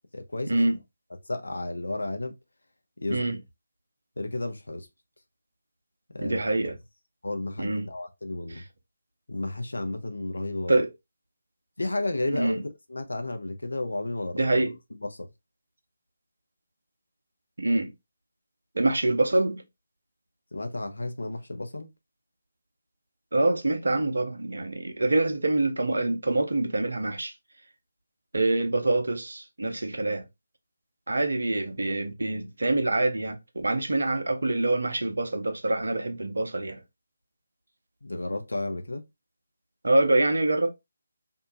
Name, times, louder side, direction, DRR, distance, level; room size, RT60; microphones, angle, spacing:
voice 1, 0.1-0.6 1.3-2.3 3.0-3.3 4.2-4.9 6.1-6.4 7.2-8.6 9.3-10.7 11.8-14.4 15.0-15.3 20.5-21.9 38.0-39.0, left 2 dB, 70° left, 0.6 m, -32 dB
voice 2, 6.2-6.8 7.6-7.9 8.5-8.6 10.7-10.9 12.3-12.6 14.4-14.8 17.6-17.9 18.7-19.6 23.3-27.3 28.3-30.3 31.1-36.8 39.8-40.7, right 2 dB, 65° right, 0.7 m, -25 dB
2.7 x 2.2 x 2.6 m
figure-of-eight pair, 150°, 0 cm